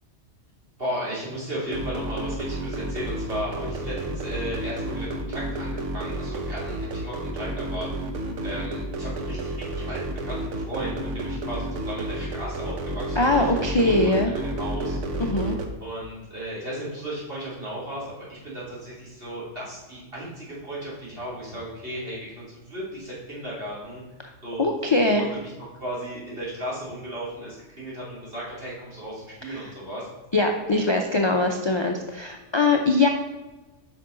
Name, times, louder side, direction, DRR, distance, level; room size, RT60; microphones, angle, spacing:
voice 1, 0.8-7.9 8.4-15.0 15.8-24.0 24.4-24.7 25.1-30.1, right 1 dB, 50° right, -7 dB, 3.0 m, -35 dB
sound 1, 1.7-15.7, right 1 dB, 75° right, 1.2 m, -31 dB
voice 2, 13.2-14.3 15.2-15.6 24.6-25.2 29.5-29.6 30.3-33.1, left 2 dB, 40° left, 2 dB, 0.4 m, -22 dB
8.5 x 5.3 x 3.8 m, 1.1 s
omnidirectional pair, 1.3 m